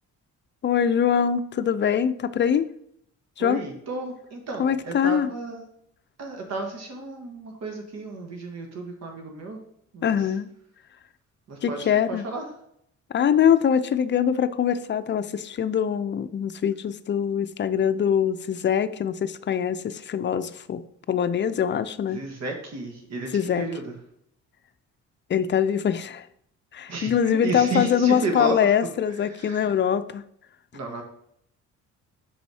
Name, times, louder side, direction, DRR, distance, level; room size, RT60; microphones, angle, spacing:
voice 1, 0.6-2.7 3.4-3.6 4.6-5.3 10.0-10.5 11.6-12.2 13.1-20.8 21.1-22.2 23.3-23.7 25.3-26.3 26.7-30.2, left 8 dB, 40° left, 12 dB, 0.5 m, -23 dB
voice 2, 3.4-5.6 6.2-9.6 9.9-10.4 11.5-12.5 22.1-24.0 26.9-28.7 29.0-29.8 30.7-31.0, right 2 dB, 60° right, 3 dB, 1.4 m, -33 dB
6.2 x 4.0 x 4.8 m, 0.71 s
cardioid pair, 90°, 30 cm